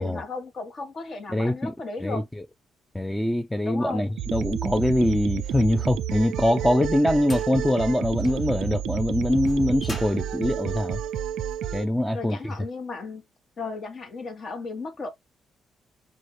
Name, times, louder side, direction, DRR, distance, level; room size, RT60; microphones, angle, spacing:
voice 1, 0.0-2.2 3.6-4.1 12.1-13.2 13.6-15.1, left 3 dB, 50° left, 1.0 m, -35 dB
voice 2, 1.3-1.7 2.0-2.2 2.9-11.0 11.7-12.5, left 1 dB, 5° left, 0.4 m, -23 dB
sound 1, 4.2-11.9, right 10 dB, 80° right, 0.3 m, -30 dB
sound 2, 6.2-11.6, left 2 dB, 25° left, 1.1 m, -44 dB
4.2 x 2.4 x 3.0 m
cardioid pair, 90°, 0 cm